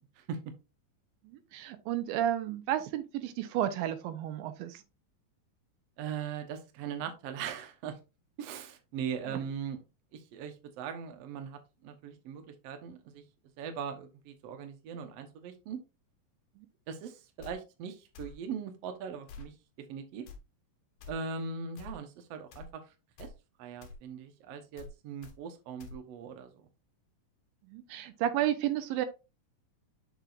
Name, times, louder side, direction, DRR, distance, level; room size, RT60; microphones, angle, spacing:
voice 1, 1.2-4.8 9.3-9.4 16.6-16.7 27.7-29.1, right 11 dB, 90° right, 2.5 m, -32 dB
voice 2, 6.0-8.0 8.4-9.8 10.1-13.2 13.6-15.8 16.9-19.5 19.9-20.2 21.1-22.8 23.2-23.3 23.6-26.5, right 6 dB, 70° right, 1.6 m, -40 dB
sound 1, 17.4-17.6 18.1-18.4 19.3-19.5 20.3-20.4 21.0-21.1 21.8-22.0 22.5-22.7 23.2-23.4 23.8-24.0 24.8-24.9 25.2-25.4 25.8-26.0, left 4 dB, 65° left, 1.9 m, -47 dB
6.7 x 6.1 x 2.5 m
omnidirectional pair, 4.1 m